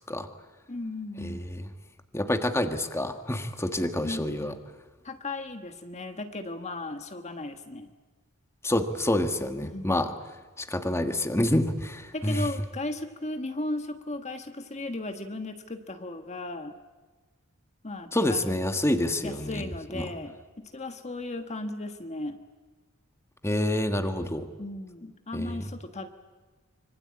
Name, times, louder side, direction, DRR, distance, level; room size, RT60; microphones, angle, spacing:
voice 1, 0.7-1.6 4.0-4.5 5.0-7.9 9.6-10.0 12.1-16.7 17.8-18.6 19.2-22.4 24.6-26.1, left 2 dB, 30° left, 7 dB, 1.5 m, -36 dB
voice 2, 1.2-1.7 2.1-4.6 8.6-10.1 10.6-12.5 18.1-20.1 23.4-24.5 25.3-25.6, left 1 dB, 10° left, 7 dB, 1.5 m, -28 dB
25.5 x 24.5 x 8.7 m, 1.3 s
head